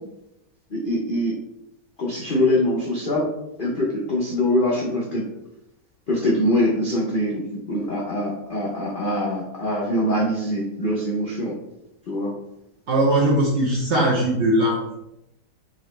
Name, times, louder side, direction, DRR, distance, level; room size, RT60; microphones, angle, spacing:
voice 1, 0.7-1.3 2.0-3.3 3.6-5.3 6.1-11.5 12.1-12.3, left 1 dB, 65° left, -4 dB, 0.5 m, -23 dB
voice 2, 12.9-14.9, right 1 dB, 55° right, -3 dB, 0.8 m, -20 dB
4.0 x 2.9 x 3.1 m, 0.85 s
omnidirectional pair, 1.9 m